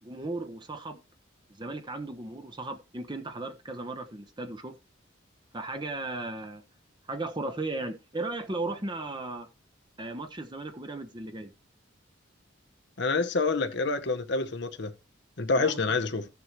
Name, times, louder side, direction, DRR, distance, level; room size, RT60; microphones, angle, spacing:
voice 1, 0.0-1.0 1.6-4.7 5.5-6.6 7.1-9.5 10.0-11.5 15.5-15.8, right 2 dB, 25° right, 1.0 m, -36 dB
voice 2, 13.0-14.9 15.4-16.3, left 3 dB, 60° left, 1.0 m, -27 dB
15.0 x 7.0 x 3.1 m
head